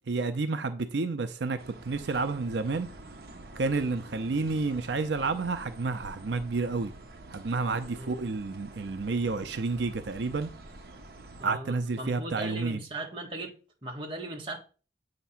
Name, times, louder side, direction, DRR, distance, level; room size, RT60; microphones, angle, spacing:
voice 1, 0.1-2.9 3.6-6.9 7.3-10.5 11.4-12.8, right 3 dB, 90° right, 0.6 m, -30 dB
sound 1, 1.6-11.5, right 2 dB, 60° right, 0.9 m, -47 dB
voice 2, 7.8-8.2 11.4-13.5 13.8-14.6, right 2 dB, 30° right, 1.3 m, -38 dB
8.2 x 2.9 x 5.7 m
head